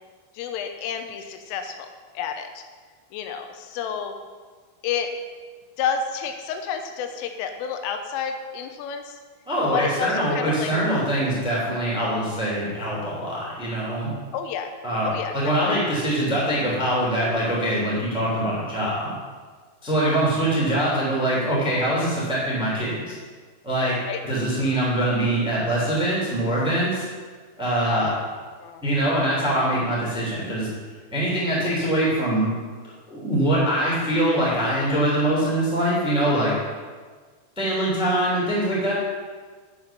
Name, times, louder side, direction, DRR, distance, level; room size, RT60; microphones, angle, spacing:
voice 1, 0.3-1.8 2.2-2.6 3.1-4.1 4.8-5.1 5.8-9.2 9.7-10.7 14.3-14.7 15.0-15.3 15.6-15.7 24.0-24.2 28.0-28.1 28.6-28.8, left 7 dB, 85° left, 6 dB, 3.3 m, -30 dB
voice 2, 9.4-14.1 14.8-19.1 19.8-23.2 23.6-24.0 24.2-27.0 27.6-28.1 28.8-30.7 31.1-32.5 33.1-36.6 37.6-38.9, right 1 dB, ahead, -5 dB, 1.7 m, -23 dB
8.8 x 8.0 x 5.9 m, 1.5 s
omnidirectional pair, 5.8 m